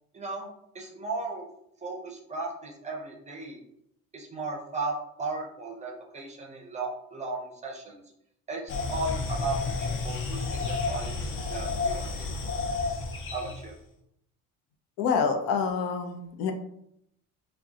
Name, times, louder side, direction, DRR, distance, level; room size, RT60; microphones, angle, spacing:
voice 1, 0.1-0.5 0.7-1.5 1.8-3.6 4.1-8.0 8.5-12.3 13.3-13.7, right 2 dB, 20° right, -1 dB, 0.6 m, -35 dB
sound 1, 8.7-13.7, left 3 dB, 35° left, 0.6 m, -31 dB
voice 2, 15.0-16.5, left 6 dB, 75° left, 5 dB, 0.7 m, -27 dB
4.8 x 2.2 x 2.8 m, 0.77 s
cardioid pair, 150°, 35 cm